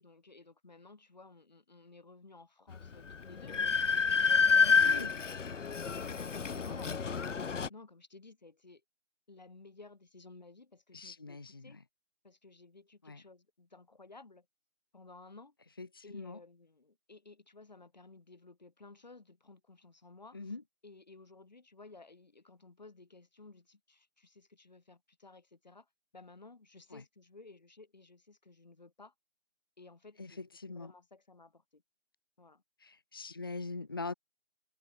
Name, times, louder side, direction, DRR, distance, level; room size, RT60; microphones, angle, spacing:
voice 1, 0.0-4.7 4.9-8.8 9.3-11.4 11.6-11.8 12.2-14.4 14.9-15.5 16.0-20.4 20.8-25.9 26.1-29.1 29.8-30.4 30.7-31.8 32.4-32.6, left 3 dB, 35° left, 2.5 m, -56 dB
Train, 2.7-2.8 3.1-7.7, left 6 dB, 85° left, 0.8 m, -28 dB
voice 2, 4.6-5.1 10.9-11.8 13.0-13.2 15.8-16.4 20.3-20.6 26.9-27.0 30.2-30.9 32.8-34.1, left 3 dB, 20° left, 1.9 m, -43 dB
figure-of-eight pair, 175°, 36 cm